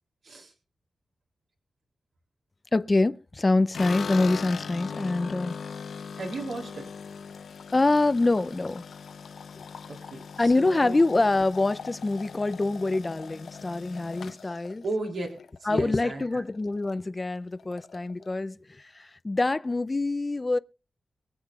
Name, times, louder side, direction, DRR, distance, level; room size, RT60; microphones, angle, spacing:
voice 1, 2.7-5.6 7.7-8.9 9.6-9.7 10.4-14.8 15.7-20.6, left 2 dB, 25° left, 0.6 m, -25 dB
sound 1, 3.7-16.0 16.3-16.9 17.2-17.3 17.6-18.3, left 6 dB, 75° left, 0.8 m, -40 dB
voice 2, 6.1-6.9 9.9-11.0 14.8-15.3 15.6-16.4, right 2 dB, 70° right, 3.2 m, -35 dB
23.0 x 7.8 x 2.4 m
wide cardioid pair, 100°, 0 cm